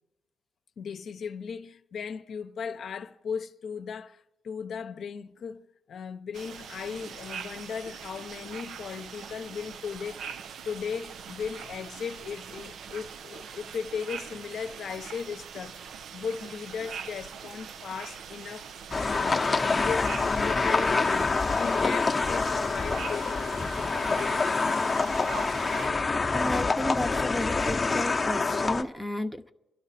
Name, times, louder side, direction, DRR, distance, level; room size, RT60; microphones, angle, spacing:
voice 1, 0.8-10.3 10.6-24.8, left 6 dB, 60° left, 0.8 m, -37 dB
sound 1, 6.3-25.9, right 7 dB, 65° right, 0.5 m, -42 dB
sound 2, 18.9-28.8, left 4 dB, 25° left, 0.9 m, -26 dB
voice 2, 26.3-29.5, left 1 dB, 5° right, 0.9 m, -32 dB
29.5 x 11.5 x 4.2 m
cardioid pair, 90°, 0 cm